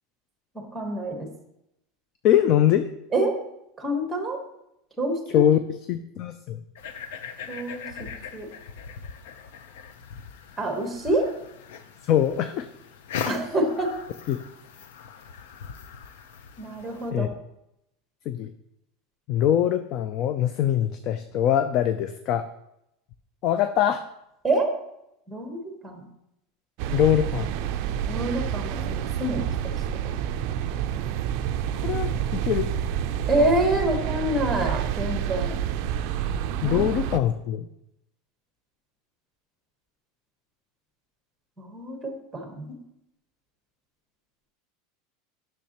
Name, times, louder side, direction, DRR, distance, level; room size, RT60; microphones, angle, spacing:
voice 1, 0.5-1.3 3.1-3.3 3.8-4.4 5.0-5.6 7.5-7.9 8.3-8.5 10.6-11.3 13.3-13.9 16.6-17.3 24.4-24.7 25.3-26.1 28.1-30.1 33.3-35.6 36.6-36.9 41.6-42.8, right 1 dB, 5° right, 4 dB, 1.1 m, -27 dB
voice 2, 2.2-2.9 5.3-5.6 5.9-6.6 12.0-12.7 14.3-14.4 17.1-17.3 18.3-18.5 19.3-22.5 23.4-24.0 26.9-27.5 31.8-32.7 36.6-37.7, left 10 dB, 40° left, 10 dB, 0.3 m, -23 dB
sound 1, 6.7-17.1, left 7 dB, 75° left, 0.6 m, -40 dB
sound 2, 26.8-37.2, right 9 dB, 50° right, 0.4 m, -28 dB
10.0 x 6.4 x 2.9 m, 0.83 s
supercardioid pair, 170°, 0 cm